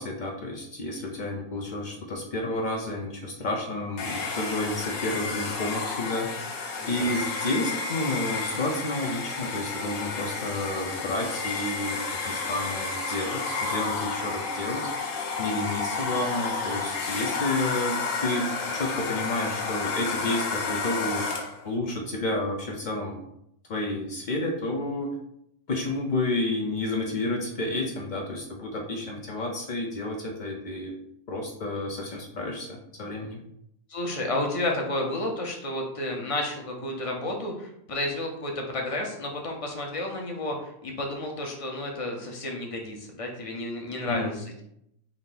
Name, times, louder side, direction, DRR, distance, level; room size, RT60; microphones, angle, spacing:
voice 1, 0.0-6.3 6.9-12.0 12.2-14.9 15.4-21.3 21.6-23.2 23.7-25.1 25.7-30.9 31.3-33.4 44.1-44.3, left 2 dB, 80° left, 0 dB, 0.4 m, -30 dB
Domestic sounds home sounds, 4.0-21.6, left 4 dB, 65° left, 1.0 m, -31 dB
voice 2, 6.8-7.2 33.9-44.6, left 1 dB, 35° left, 1 dB, 0.6 m, -31 dB
4.7 x 2.7 x 3.9 m, 0.75 s
omnidirectional pair, 1.6 m